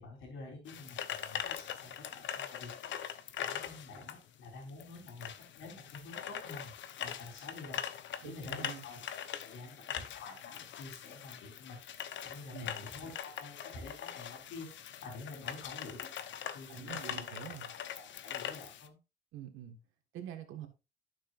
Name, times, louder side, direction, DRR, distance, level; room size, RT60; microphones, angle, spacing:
voice 1, 0.0-2.7 3.4-7.8 8.2-9.2 9.4-11.8 12.2-16.3 16.5-17.4 17.9-19.0, left 3 dB, 85° left, 3.9 m, -48 dB
sound 1, 0.7-18.9, left 9 dB, 70° left, 0.8 m, -42 dB
voice 2, 8.2-8.8 12.5-12.7 16.7-17.7 19.3-19.8 20.1-20.7, right 10 dB, 90° right, 1.6 m, -46 dB
11.5 x 6.2 x 2.5 m
cardioid pair, 90°, 20 cm